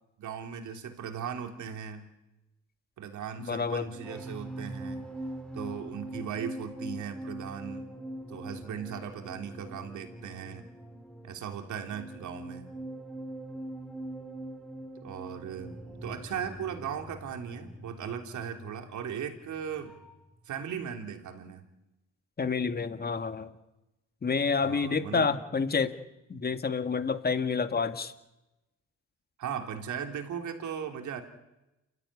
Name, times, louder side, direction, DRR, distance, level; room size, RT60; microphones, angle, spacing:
voice 1, 0.2-2.1 3.0-5.0 5.5-7.9 8.3-10.7 11.2-12.7 15.0-19.9 20.5-21.7 24.6-25.3 29.4-31.2, right 8 dB, 75° right, 5 dB, 3.4 m, -38 dB
voice 2, 3.4-3.9 22.4-23.5 24.2-26.0 26.3-28.1, left 5 dB, 30° left, 10 dB, 1.8 m, -29 dB
sound 1, 3.7-20.3 20.6-20.9, right 1 dB, 5° left, 4.2 m, -43 dB
29.0 x 14.0 x 9.8 m, 0.96 s
cardioid pair, 90°, 30 cm